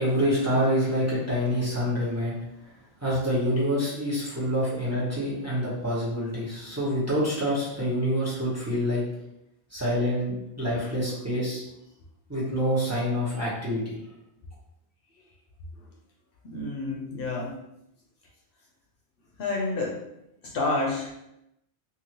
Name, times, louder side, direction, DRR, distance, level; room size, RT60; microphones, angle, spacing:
voice 1, 0.0-2.3 3.0-9.0 9.7-11.6 12.3-13.9, equal, 15° right, -8 dB, 1.0 m, -26 dB
voice 2, 16.4-17.6 19.4-20.0 20.4-21.3, left 2 dB, 65° left, -1 dB, 0.7 m, -29 dB
2.7 x 2.6 x 2.9 m, 0.82 s
omnidirectional pair, 1.1 m